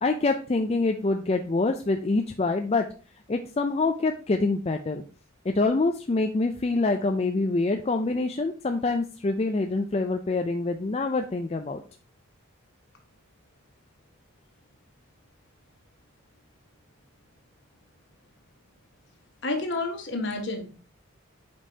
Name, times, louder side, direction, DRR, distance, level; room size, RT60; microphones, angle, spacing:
voice 1, 0.0-2.9 3.3-5.0 5.4-11.8, left 3 dB, 30° left, 5 dB, 0.4 m, -25 dB
voice 2, 19.4-20.7, left 2 dB, 55° left, 4 dB, 1.5 m, -30 dB
8.3 x 5.2 x 2.8 m, 0.37 s
head